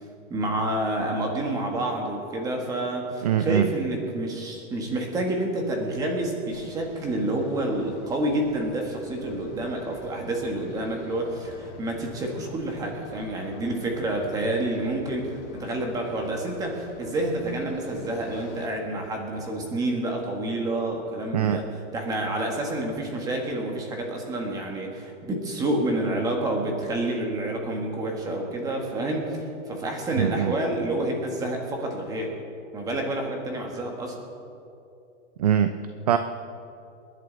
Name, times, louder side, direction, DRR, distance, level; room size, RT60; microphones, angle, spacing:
voice 1, 0.3-32.3 32.7-34.2, right 1 dB, 10° right, 1 dB, 1.6 m, -28 dB
voice 2, 3.2-3.7 21.3-21.6 30.2-30.5 35.4-35.8 36.1-36.2, right 9 dB, 35° right, 10 dB, 0.4 m, -22 dB
sound 1, 6.5-18.7, left 4 dB, 75° left, 2.5 m, -46 dB
28.0 x 11.0 x 4.0 m, 2.7 s
supercardioid pair, 170°, 35 cm